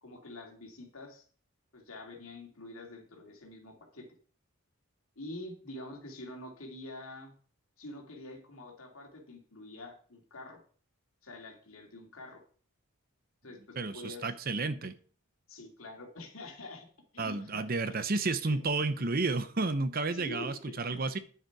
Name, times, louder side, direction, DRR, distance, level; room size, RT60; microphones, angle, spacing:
voice 1, 0.0-1.2 1.7-4.1 5.2-7.3 7.8-10.6 11.2-12.4 13.4-14.3 15.5-16.9 17.1-17.7 18.4-18.6 20.1-21.1, left 2 dB, 70° left, 2 dB, 2.6 m, -46 dB
voice 2, 13.8-14.9 17.2-21.2, right 3 dB, 40° right, 12 dB, 0.7 m, -31 dB
9.7 x 7.6 x 4.7 m, 0.43 s
head